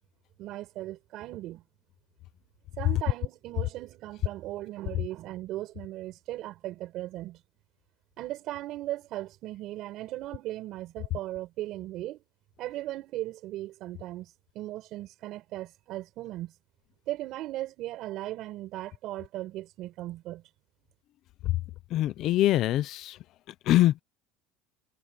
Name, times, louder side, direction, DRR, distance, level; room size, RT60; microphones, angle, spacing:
voice 1, 0.4-1.6 2.8-7.4 8.2-12.2 12.6-14.3 14.5-16.5 17.1-20.4, right 15 dB, 45° right, 6.5 m, -37 dB
voice 2, 21.9-23.1 23.7-24.0, left 14 dB, 40° left, 0.6 m, -23 dB
cardioid pair, 170°, 0 cm